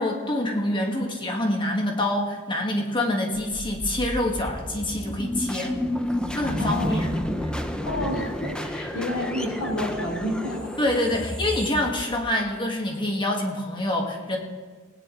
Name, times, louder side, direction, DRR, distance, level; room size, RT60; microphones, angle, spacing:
voice 1, 0.0-5.8 6.3-7.1 10.8-14.4, left 1 dB, 20° left, 1 dB, 1.5 m, -26 dB
sound 1, 3.3-12.5, equal, 5° left, 0.6 m, -30 dB
voice 2, 6.5-7.1 7.8-10.7, left 1 dB, 65° left, 0 dB, 3.1 m, -30 dB
19.0 x 9.4 x 3.7 m, 1.5 s
head